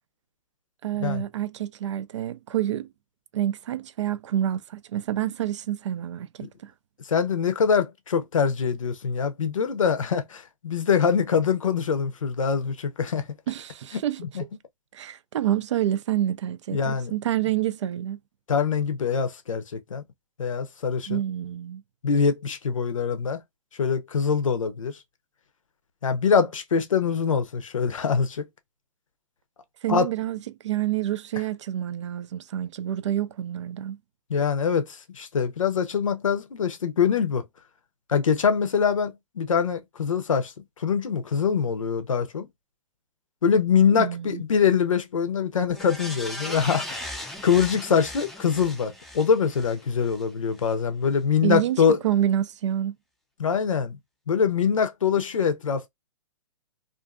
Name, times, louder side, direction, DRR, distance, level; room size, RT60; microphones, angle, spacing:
voice 1, 0.8-2.9 3.3-6.7 13.5-14.2 14.9-18.2 21.1-21.8 29.8-30.4 30.6-34.0 44.0-44.4 51.4-52.9, right 12 dB, 65° right, 0.4 m, -28 dB
voice 2, 7.0-13.3 14.2-14.4 16.7-17.1 18.5-20.0 20.4-21.2 22.0-23.4 23.8-25.0 26.0-28.5 29.9-30.1 34.3-37.5 38.1-42.5 43.4-52.0 53.4-54.0 54.3-55.9, left 6 dB, 85° left, 0.6 m, -24 dB
sound 1, 45.7-50.2 50.6-50.7, left 1 dB, ahead, 0.4 m, -38 dB
2.5 x 2.5 x 2.2 m
hypercardioid pair, 125°, 16 cm